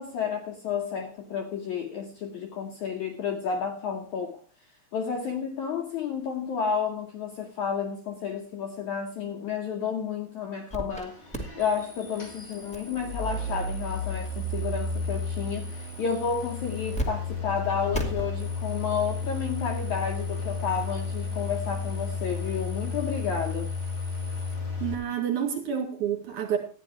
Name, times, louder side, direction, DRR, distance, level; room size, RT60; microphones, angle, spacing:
voice 1, 0.0-4.4 4.9-11.2 11.6-23.7, left 6 dB, 75° left, 1.8 m, -31 dB
sound 1, 10.7-11.0 11.3-17.1 17.3-17.4 17.9-24.5, right 1 dB, 5° left, 0.8 m, -41 dB
sound 2, 10.9-24.9, left 3 dB, 30° left, 2.6 m, -33 dB
voice 2, 24.8-26.6, right 8 dB, 55° right, 3.6 m, -29 dB
13.5 x 9.8 x 4.4 m
omnidirectional pair, 4.5 m